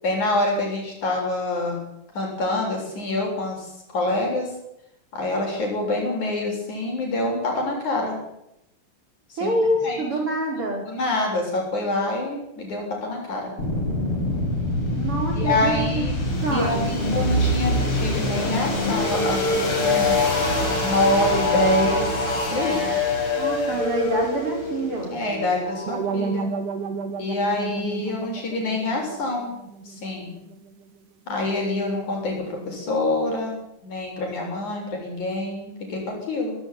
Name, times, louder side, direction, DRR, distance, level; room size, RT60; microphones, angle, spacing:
voice 1, 0.0-1.8 2.1-4.5 5.1-8.2 9.3-9.5 9.8-10.0 10.9-13.5 15.3-16.1 16.5-20.2 20.8-22.8 25.1-26.5 27.2-29.5 29.9-30.3 31.3-36.6, left 2 dB, 70° left, 0 dB, 8.6 m, -26 dB
voice 2, 9.4-10.8 15.0-16.9 23.4-25.2, right 1 dB, 45° right, 1 dB, 6.2 m, -26 dB
sound 1, 13.6-26.4, left 2 dB, 45° left, 5.8 m, -24 dB
sound 2, 25.9-30.8, right 4 dB, 80° right, 3.2 m, -32 dB
20.0 x 16.5 x 9.9 m, 0.82 s
omnidirectional pair, 3.5 m